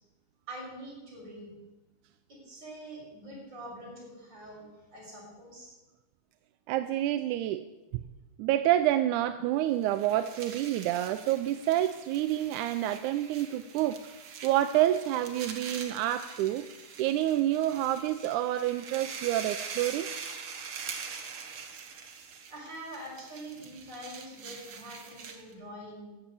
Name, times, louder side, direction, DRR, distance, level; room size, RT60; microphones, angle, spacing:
voice 1, 0.5-1.5 2.3-5.7 22.5-26.1, right 1 dB, 35° right, -4 dB, 6.8 m, -44 dB
voice 2, 6.7-7.7 8.4-14.0 14.4-16.7 17.0-20.1, right 13 dB, 85° right, 10 dB, 2.0 m, -28 dB
sound 1, 9.7-25.5, right 6 dB, 50° right, 1.8 m, -44 dB
15.0 x 7.8 x 8.3 m, 1.1 s
omnidirectional pair, 3.4 m